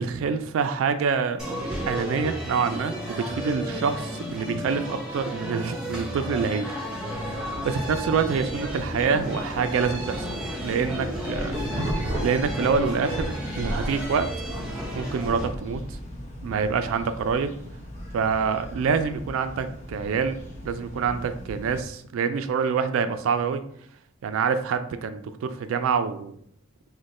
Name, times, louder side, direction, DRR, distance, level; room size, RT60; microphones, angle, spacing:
voice 1, 0.0-1.4 1.9-6.7 7.1-14.3 14.9-16.0 16.4-17.5 18.1-20.4 20.6-23.6 24.2-26.4, right 5 dB, 75° right, 10 dB, 0.3 m, -26 dB
sound 1, 1.4-15.5, equal, 5° right, 0.7 m, -33 dB
sound 2, 7.1-21.8, equal, 35° left, 0.8 m, -40 dB
sound 3, 10.9-13.3 13.6-16.0, equal, 40° right, 0.8 m, -32 dB
3.0 x 2.1 x 4.1 m, 0.65 s
head